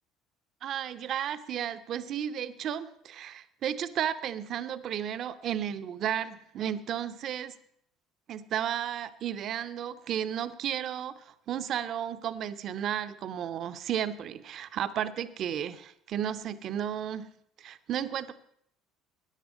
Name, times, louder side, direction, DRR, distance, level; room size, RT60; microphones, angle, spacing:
voice 1, 0.6-7.5 8.3-17.3 17.6-18.3, right 9 dB, 45° right, 13 dB, 0.7 m, -33 dB
15.0 x 10.5 x 5.3 m, 0.69 s
figure-of-eight pair, 60°, 0 cm